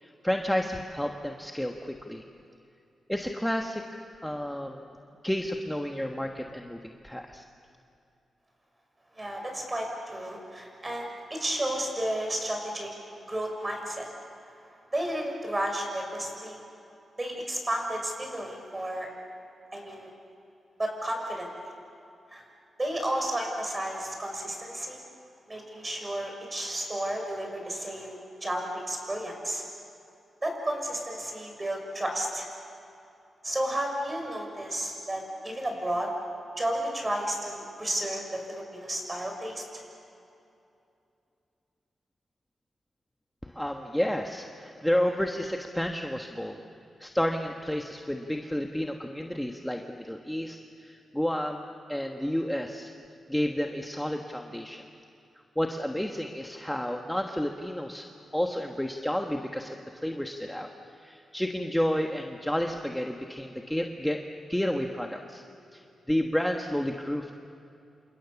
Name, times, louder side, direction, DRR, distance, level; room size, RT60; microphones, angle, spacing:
voice 1, 0.0-2.2 3.1-3.8 4.2-4.9 5.2-7.4 43.4-46.6 47.0-52.9 53.3-54.8 55.5-58.1 58.3-60.7 61.0-64.2 64.5-65.4 65.7-65.8 66.1-67.3, equal, 5° left, 3 dB, 1.4 m, -31 dB
voice 2, 9.1-12.9 13.3-14.1 14.9-16.6 17.2-19.1 19.7-20.1 20.8-21.5 22.3-22.4 22.8-25.0 25.5-29.6 30.4-32.5 33.4-36.1 36.6-39.7, right 1 dB, 20° right, 2 dB, 6.9 m, -32 dB
28.5 x 27.5 x 7.2 m, 2.7 s
cardioid pair, 95°, 0 cm